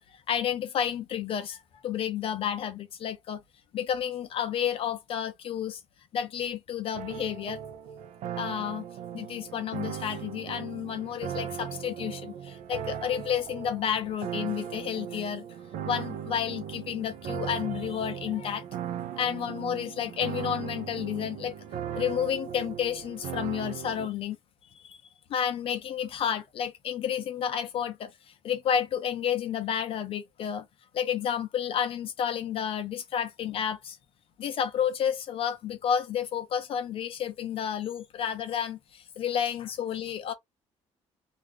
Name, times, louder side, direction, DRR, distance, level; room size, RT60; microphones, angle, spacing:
voice 1, 0.0-3.4 3.7-5.8 6.1-7.6 8.4-8.9 9.1-15.4 15.8-18.6 19.2-21.5 21.9-24.4 24.7-25.0 25.3-30.6 30.9-34.0 34.4-40.3, left 9 dB, 50° left, 0.7 m, -31 dB
sound 1, 6.9-24.1, right 9 dB, 80° right, 0.5 m, -38 dB
3.0 x 2.4 x 3.5 m
cardioid pair, 170°, 12 cm